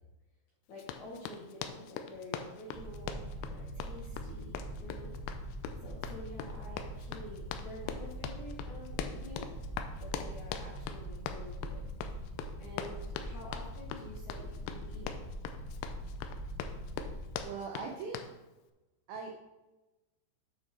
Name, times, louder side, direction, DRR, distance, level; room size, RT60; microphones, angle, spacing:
voice 1, 0.7-3.2 3.4-5.1 5.8-9.5 10.0-11.8 12.6-15.2, left 1 dB, 60° left, -5 dB, 2.0 m, -48 dB
Run, 0.8-18.4, left 7 dB, 85° left, 2.4 m, -43 dB
sound 1, 2.7-17.4, right 1 dB, 65° right, 1.4 m, -43 dB
voice 2, 17.4-18.2 19.1-19.4, right 4 dB, 85° right, 1 dB, 2.1 m, -40 dB
8.2 x 6.2 x 4.5 m, 1.1 s
omnidirectional pair, 5.5 m